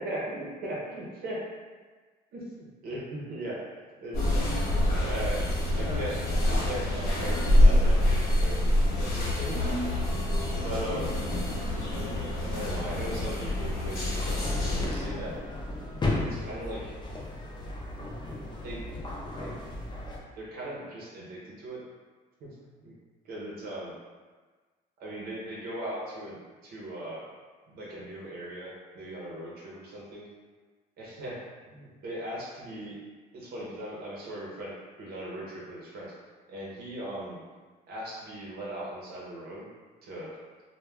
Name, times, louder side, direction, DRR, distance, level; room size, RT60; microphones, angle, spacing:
voice 1, 0.0-1.4 2.3-3.6 4.0-4.4 4.9-8.6 9.0-10.1 10.6-11.3 12.5-14.4 14.6-15.4 16.2-16.9 18.6-18.8 19.4-19.5 20.4-21.8 22.4-22.5 22.8-22.9 23.2-23.9 25.0-26.4 26.6-27.2 27.7-30.3 31.0-31.4 31.7-33.0 33.3-34.7 35.0-36.1 36.5-37.4 37.9-39.7 40.0-40.3, right 1 dB, 65° right, -5 dB, 0.8 m, -38 dB
sound 1, 4.1-14.9, left 1 dB, 60° left, 0.9 m, -26 dB
sound 2, 14.1-20.2, left 2 dB, 25° left, 0.5 m, -35 dB
2.2 x 2.2 x 3.3 m, 1.4 s
cardioid pair, 110°, 17 cm